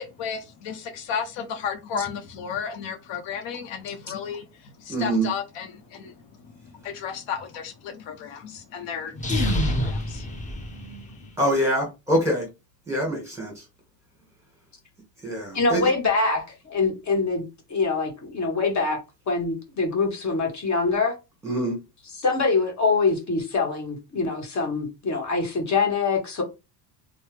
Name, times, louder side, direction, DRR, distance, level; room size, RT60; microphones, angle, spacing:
voice 1, 0.0-4.5 4.8-6.1 6.8-10.3, left 7 dB, 75° left, 0.7 m, -33 dB
voice 2, 4.9-5.3 11.4-12.5 12.9-13.5 15.2-15.8 21.4-21.7, right 1 dB, 5° right, 1.5 m, -24 dB
sound 1, 9.1-11.3, left 1 dB, 15° left, 0.7 m, -27 dB
voice 3, 15.5-19.0 19.3-21.1 22.0-26.4, left 4 dB, 40° left, 1.2 m, -24 dB
3.1 x 2.0 x 3.1 m
cardioid pair, 120°, 44 cm